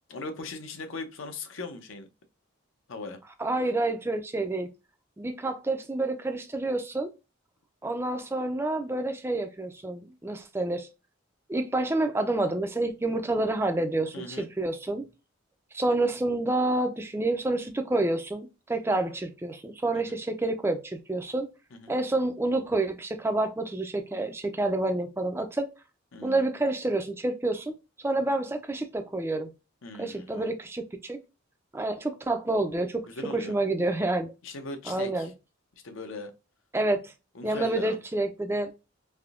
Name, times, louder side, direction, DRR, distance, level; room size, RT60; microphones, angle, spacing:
voice 1, 0.1-2.1 2.9-3.2 14.1-14.5 19.9-20.2 21.7-22.0 26.1-26.4 29.8-30.5 33.1-33.5 34.4-35.3 35.8-36.3 37.3-38.0, left 3 dB, 70° left, 0.6 m, -39 dB
voice 2, 3.4-4.7 5.2-7.1 7.8-10.9 11.5-15.0 15.7-21.5 21.9-25.7 26.2-27.7 28.0-29.5 30.0-31.2 31.7-33.1 33.3-34.3 34.9-35.3 36.7-37.1 37.4-38.8, right 2 dB, 10° right, 0.3 m, -28 dB
3.4 x 2.6 x 2.4 m
head